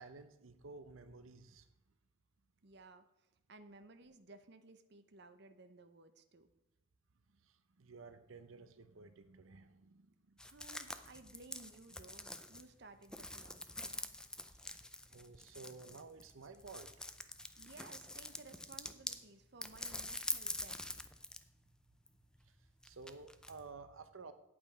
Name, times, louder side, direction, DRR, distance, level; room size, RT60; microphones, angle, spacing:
voice 1, 0.0-1.7 7.3-10.4 14.4-14.8 15.1-16.9 22.4-24.3, right 4 dB, 85° right, 11 dB, 0.7 m, -54 dB
voice 2, 2.6-3.0 3.5-6.5 10.5-14.0 17.6-20.8, right 3 dB, 55° right, 8 dB, 0.8 m, -58 dB
sound 1, 10.4-19.2 19.6-21.5 21.8-23.6, left 1 dB, 5° left, 0.5 m, -45 dB
8.8 x 8.6 x 5.4 m, 0.91 s
head